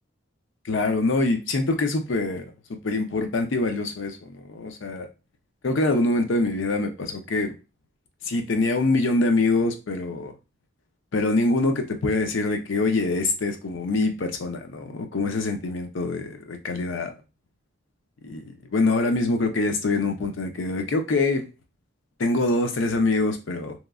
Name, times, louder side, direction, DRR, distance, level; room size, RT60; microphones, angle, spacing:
voice 1, 0.7-2.5 2.8-5.1 5.6-7.5 8.2-10.3 11.1-17.1 18.2-18.4 18.7-21.5 22.2-23.7, left 2 dB, 75° left, 5 dB, 0.5 m, -24 dB
3.0 x 2.4 x 2.3 m, 0.28 s
head